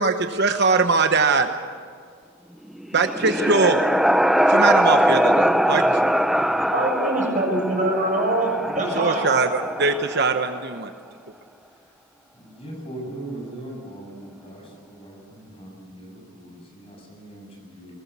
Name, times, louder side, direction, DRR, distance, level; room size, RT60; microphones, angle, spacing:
voice 1, 0.0-1.5 2.9-3.8 4.5-6.0 9.0-10.9, right 4 dB, 55° right, 7 dB, 1.0 m, -21 dB
sound 1, 2.7-10.6, equal, ahead, 0.6 m, -22 dB
voice 2, 6.7-9.2, right 1 dB, 40° right, 0 dB, 7.0 m, -23 dB
voice 3, 12.3-18.0, right 1 dB, 30° left, 0 dB, 7.2 m, -39 dB
21.0 x 20.0 x 8.3 m, 2.1 s
head